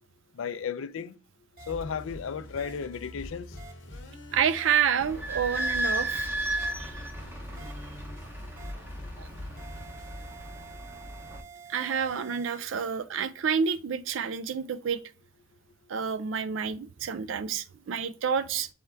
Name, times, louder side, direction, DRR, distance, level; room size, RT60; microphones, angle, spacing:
voice 1, 0.4-1.1 1.7-3.5 8.1-8.2, left 6 dB, 85° left, 0.4 m, -34 dB
sound 1, 1.6-10.4, left 1 dB, 65° left, 1.0 m, -45 dB
sound 2, 1.6-1.7 2.6-2.7 3.6-3.7 4.6-4.7 5.6-5.7 6.6-6.7 7.6-7.7 8.6-8.7 9.6-12.6, right 6 dB, 45° right, 0.7 m, -48 dB
voice 2, 4.3-6.3 6.8-7.0 9.2-9.3 11.7-15.0 15.9-18.7, right 7 dB, 75° right, 0.4 m, -29 dB
Idling / Squeak, 5.0-11.4, right 1 dB, 10° right, 0.6 m, -34 dB
3.6 x 3.4 x 4.3 m
head